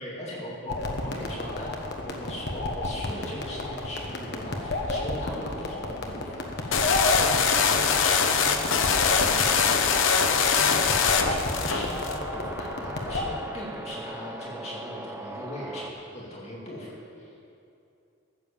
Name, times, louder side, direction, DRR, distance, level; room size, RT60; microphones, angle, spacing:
voice 1, 0.0-1.7 2.0-10.8 11.2-17.4, equal, 35° left, -5 dB, 2.3 m, -39 dB
sound 1, 0.7-13.3, left 2 dB, 55° left, 1.3 m, -32 dB
sound 2, 6.7-12.2, left 6 dB, 70° left, 0.8 m, -23 dB
sound 3, 7.6-15.9, right 1 dB, 10° right, 0.6 m, -39 dB
14.0 x 7.7 x 7.2 m, 2.6 s
head